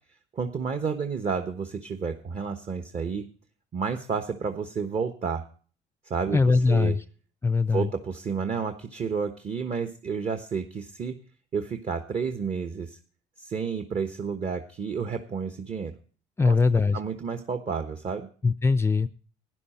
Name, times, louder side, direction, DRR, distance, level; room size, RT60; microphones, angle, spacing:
voice 1, 0.3-3.2 3.7-5.4 6.0-7.0 7.7-11.1 11.5-13.0 13.4-15.9 16.4-16.6 16.9-18.3, right 5 dB, 40° right, 7 dB, 1.2 m, -31 dB
voice 2, 6.3-7.0 7.4-7.9 16.4-17.0 18.4-19.1, left 4 dB, 15° left, 14 dB, 0.5 m, -21 dB
12.0 x 10.0 x 4.4 m, 0.41 s
cardioid pair, 110°, 17 cm